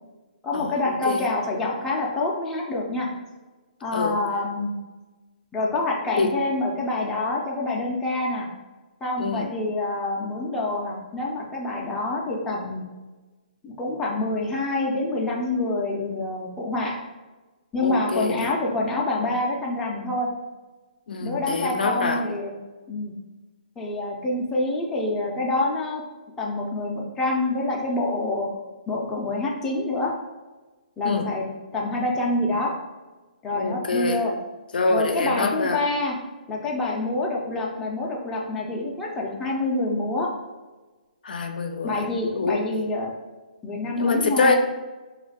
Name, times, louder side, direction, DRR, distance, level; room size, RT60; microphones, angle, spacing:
voice 1, 0.4-3.1 3.8-4.7 5.5-8.5 9.0-12.8 13.6-16.9 17.7-20.3 21.2-22.6 22.9-23.1 23.8-26.0 26.4-28.5 28.9-30.1 31.0-31.4 31.7-32.7 33.4-34.3 34.9-36.2 36.5-40.3 41.8-43.1 43.6-44.6, left 2 dB, 10° left, -3 dB, 0.5 m, -26 dB
voice 2, 9.2-9.5 17.8-18.5 21.1-22.2 31.0-31.3 33.5-34.2 34.7-35.8 41.2-42.0 42.4-42.6 44.0-44.6, left 3 dB, 80° left, 5 dB, 0.5 m, -25 dB
4.4 x 2.4 x 3.3 m, 1.2 s
hypercardioid pair, 160°, 5 cm